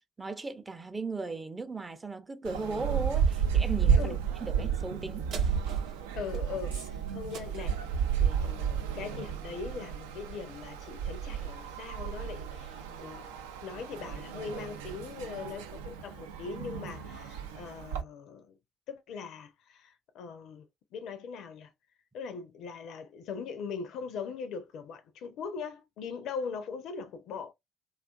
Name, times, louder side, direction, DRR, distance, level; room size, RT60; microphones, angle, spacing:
voice 1, 0.0-5.3, right 3 dB, 20° right, 0.5 m, -37 dB
sound 1, 2.4-18.0, right 7 dB, 75° right, 0.3 m, -32 dB
sound 2, 5.3-10.1 10.6-10.7, right 4 dB, 60° right, 0.7 m, -49 dB
sound 3, 5.8-10.1, right 1 dB, 90° right, 0.9 m, -57 dB
voice 2, 6.1-7.8 8.2-13.3 13.6-18.6 18.9-20.7 20.9-21.7 22.1-27.5, left 5 dB, 60° left, 0.4 m, -40 dB
2.4 x 2.4 x 2.3 m
figure-of-eight pair, 50°, 0 cm